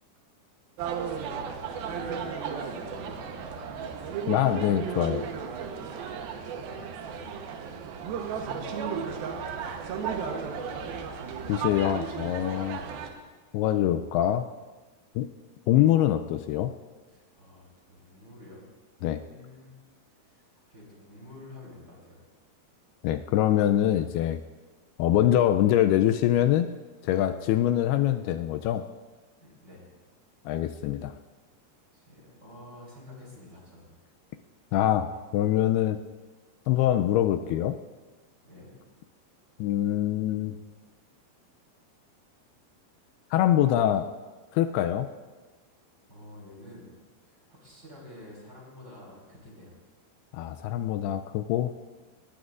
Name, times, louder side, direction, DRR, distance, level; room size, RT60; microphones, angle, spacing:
sound 1, 0.8-13.1, right 6 dB, 75° right, 2.8 m, -34 dB
voice 1, 1.1-2.2 2.6-3.9 6.1-9.5 9.8-11.0 17.1-18.7 19.1-19.8 20.2-22.2 29.4-29.9 31.9-34.0 38.4-38.7 46.1-46.9 47.2-49.8, left 1 dB, 25° right, -3 dB, 3.9 m, -49 dB
voice 2, 4.3-5.3 11.5-12.8 13.5-14.5 15.2-15.3 15.7-16.7 19.0-19.2 23.0-24.4 25.0-26.7 27.0-28.9 30.5-31.1 34.7-35.1 35.3-36.0 36.7-37.8 39.6-40.6 43.3-44.1 44.5-45.1 50.3-51.7, left 12 dB, 85° left, 8 dB, 2.4 m, -24 dB
19.0 x 18.5 x 2.5 m, 1.3 s
omnidirectional pair, 4.6 m